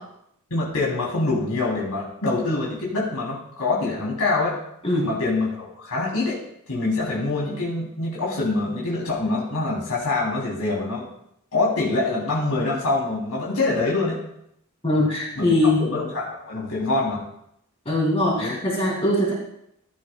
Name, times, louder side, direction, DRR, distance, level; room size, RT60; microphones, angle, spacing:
voice 1, 0.5-4.6 5.0-6.4 6.7-11.1 11.5-14.2 15.4-17.2 18.3-18.6, left 2 dB, 90° left, -4 dB, 3.4 m, -25 dB
voice 2, 14.8-15.9 17.9-19.3, left 1 dB, 25° left, -1 dB, 2.4 m, -21 dB
15.0 x 11.5 x 2.3 m, 0.75 s
head